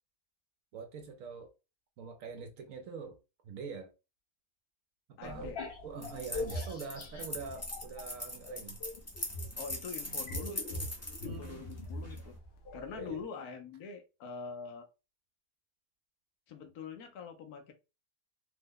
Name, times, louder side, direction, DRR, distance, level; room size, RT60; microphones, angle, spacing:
voice 1, 0.7-1.5 2.0-3.2 3.4-3.9 5.1-8.8 11.2-11.7 12.9-13.3, right 5 dB, 70° right, 0.9 m, -44 dB
voice 2, 5.2-5.6 9.6-10.9 11.2-12.4 12.7-14.9 16.5-17.7, left 5 dB, 80° left, 1.2 m, -44 dB
sound 1, 5.2-8.1 8.4-13.2, left 2 dB, 50° left, 0.9 m, -42 dB
sound 2, 6.0-12.3, left 1 dB, 20° left, 0.4 m, -41 dB
3.2 x 2.1 x 3.6 m
omnidirectional pair, 1.6 m